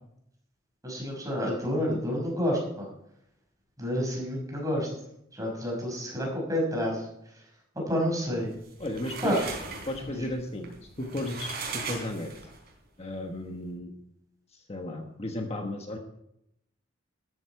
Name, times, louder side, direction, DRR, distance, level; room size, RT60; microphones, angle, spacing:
voice 1, 0.8-2.9 3.8-4.9 5.3-7.4 7.7-8.5 9.2-9.4 10.0-10.3, equal, 20° right, -1 dB, 5.4 m, -29 dB
sound 1, 8.5-12.7, right 4 dB, 55° right, 3.7 m, -38 dB
voice 2, 8.8-9.4 9.9-12.3 13.0-13.9 14.5-16.0, left 1 dB, 30° left, 3 dB, 1.3 m, -34 dB
13.5 x 12.5 x 4.7 m, 0.78 s
head